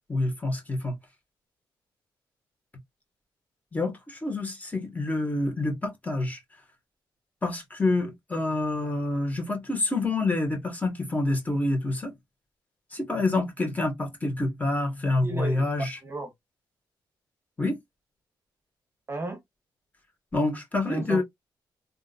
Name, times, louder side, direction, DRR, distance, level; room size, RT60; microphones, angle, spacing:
voice 1, 0.1-0.9 3.7-6.4 7.4-12.1 12.9-16.0 17.6-17.8 20.3-21.2, left 2 dB, 20° left, 1.8 m, -27 dB
voice 2, 15.2-15.6 16.0-16.3 19.1-19.4 20.9-21.2, right 2 dB, 30° right, 1.0 m, -33 dB
3.6 x 2.8 x 2.5 m
cardioid pair, 90°, 8 cm